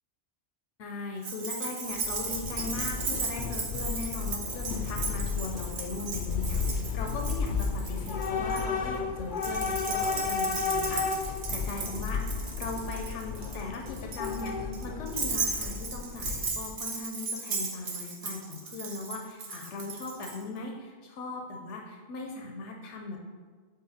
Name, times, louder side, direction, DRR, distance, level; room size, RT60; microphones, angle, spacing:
voice 1, 0.8-12.2 12.6-23.2, left 3 dB, 85° left, 1 dB, 1.0 m, -39 dB
Keys jangling, 1.2-8.6 9.4-20.4, right 4 dB, 70° right, 1.3 m, -36 dB
Train / Subway metro underground, 1.9-16.8, left 5 dB, 55° left, 0.6 m, -33 dB
7.7 x 4.2 x 4.2 m, 1.5 s
omnidirectional pair, 1.2 m